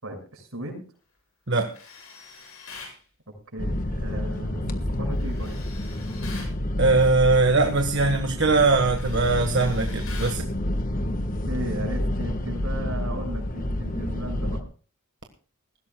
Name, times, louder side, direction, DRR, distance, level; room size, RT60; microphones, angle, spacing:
voice 1, 0.0-0.8 3.5-5.6 11.5-14.6, right 1 dB, 75° right, 3 dB, 6.7 m, -36 dB
Tools, 1.7-3.0 5.2-6.5 8.0-8.3 8.6-10.5, left 4 dB, 85° left, 6.9 m, -44 dB
sound 1, 3.6-14.6, left 1 dB, 40° left, 1.4 m, -29 dB
voice 2, 6.8-10.4, right 3 dB, 55° right, 4 dB, 1.5 m, -21 dB
20.0 x 16.0 x 2.3 m, 0.40 s
head